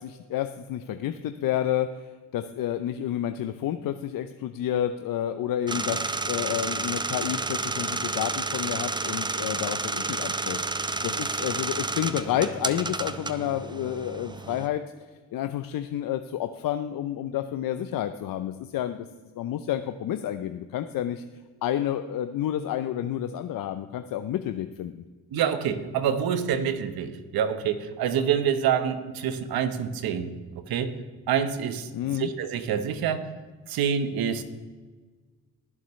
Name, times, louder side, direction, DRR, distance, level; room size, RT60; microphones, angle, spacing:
voice 1, 0.0-14.8 15.3-19.1 19.4-21.2 21.6-25.0 31.9-32.3, left 11 dB, 60° left, 9 dB, 0.7 m, -30 dB
sound 1, 5.7-14.7, right 3 dB, 10° right, 0.6 m, -30 dB
voice 2, 25.3-30.9 31.3-33.3 33.7-34.4, right 8 dB, 70° right, 10 dB, 1.2 m, -27 dB
20.0 x 7.3 x 3.2 m, 1.4 s
supercardioid pair, 70°, 38 cm